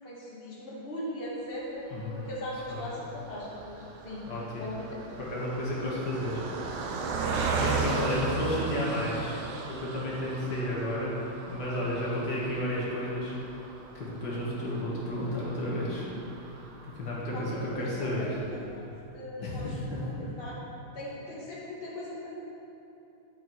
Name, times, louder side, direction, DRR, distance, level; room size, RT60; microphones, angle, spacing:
voice 1, 0.0-4.2 4.6-5.2 17.3-18.8 19.1-20.1 20.4-20.6 20.9-22.4, left 1 dB, 35° left, -6 dB, 2.0 m, -39 dB
voice 2, 1.9-2.2 2.7-3.1 4.3-4.7 5.2-6.4 7.0-9.4 9.7-11.1 11.5-13.3 13.9-16.1 16.4-16.5 16.9-18.4 19.4-20.3, left 1 dB, 70° left, -6 dB, 2.3 m, -32 dB
Car passing by, 2.1-17.5 18.1-18.2 18.4-18.6, right 4 dB, 70° right, 1.4 m, -37 dB
10.5 x 7.4 x 4.6 m, 2.8 s
omnidirectional pair, 1.9 m